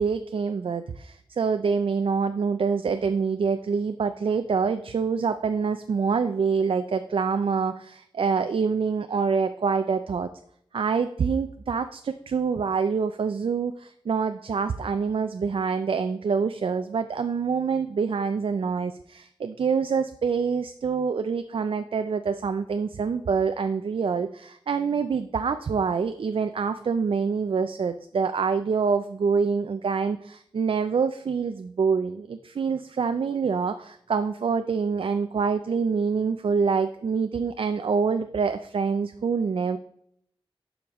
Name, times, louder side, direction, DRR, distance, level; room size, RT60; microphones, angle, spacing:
voice 1, 0.0-10.3 10.7-39.8, right 5 dB, 70° right, 9 dB, 0.4 m, -26 dB
11.5 x 5.1 x 3.1 m, 0.70 s
wide cardioid pair, 75°, 10 cm